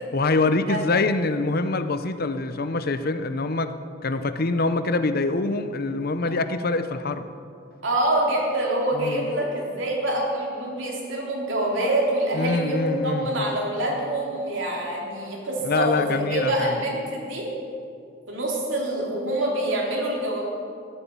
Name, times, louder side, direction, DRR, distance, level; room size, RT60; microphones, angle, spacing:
voice 1, 0.1-3.7 4.0-7.3 8.9-9.3 12.3-13.5 15.6-16.8, left 3 dB, 50° left, 10 dB, 0.8 m, -25 dB
voice 2, 7.8-17.5 18.3-20.4, right 1 dB, 75° right, -2 dB, 3.8 m, -26 dB
14.0 x 11.5 x 8.4 m, 2.5 s
head